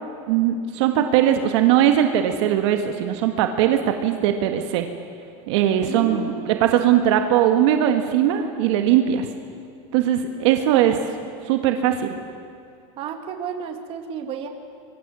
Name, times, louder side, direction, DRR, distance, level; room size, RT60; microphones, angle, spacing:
voice 1, 0.3-4.9 5.5-9.3 9.9-11.0 11.5-12.2, right 10 dB, 65° right, 5 dB, 1.6 m, -20 dB
voice 2, 5.9-6.8 8.2-8.6 13.0-14.5, right 7 dB, 35° right, 5 dB, 2.2 m, -33 dB
26.5 x 23.5 x 6.2 m, 2.6 s
supercardioid pair, 160°, 16 cm